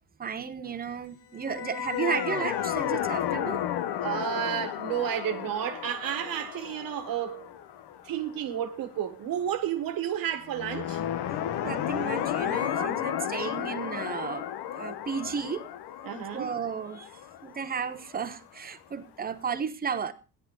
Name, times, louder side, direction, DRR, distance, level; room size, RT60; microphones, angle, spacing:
voice 1, 0.2-3.6 11.6-14.4 14.7-15.6 16.3-17.1 17.4-20.1, right 6 dB, 25° right, 1.0 m, -33 dB
sound 1, 1.4-8.6 10.5-18.3, left 10 dB, 80° left, 1.2 m, -33 dB
voice 2, 4.0-7.5 8.0-11.0 12.7-12.9 16.0-16.5, right 10 dB, 60° right, 1.5 m, -31 dB
16.5 x 10.5 x 3.8 m
cardioid pair, 180°, 39 cm